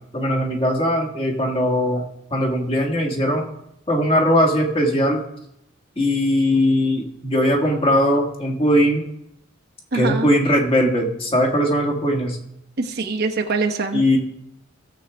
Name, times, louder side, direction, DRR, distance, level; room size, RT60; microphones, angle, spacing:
voice 1, 0.1-2.0 2.3-3.5 3.9-5.2 6.0-9.0 9.9-12.4 13.9-14.2, equal, 30° left, 0 dB, 1.6 m, -19 dB
voice 2, 9.9-10.3 12.8-14.0, right 3 dB, 55° right, 3 dB, 1.0 m, -23 dB
17.0 x 7.3 x 3.4 m, 0.80 s
head